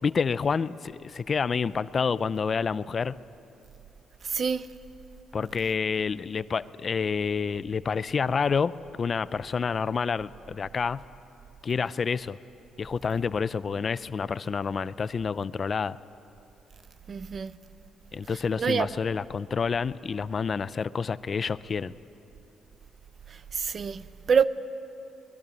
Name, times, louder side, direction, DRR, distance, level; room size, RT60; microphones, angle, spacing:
voice 1, 0.0-3.2 5.3-11.0 11.6-12.4 12.8-16.0 18.1-21.9, left 5 dB, 40° left, 0.5 m, -28 dB
voice 2, 4.2-4.7 17.1-17.6 18.6-18.9 23.3-24.4, right 6 dB, 45° right, 0.7 m, -26 dB
24.5 x 20.5 x 8.3 m
cardioid pair, 90°, 0 cm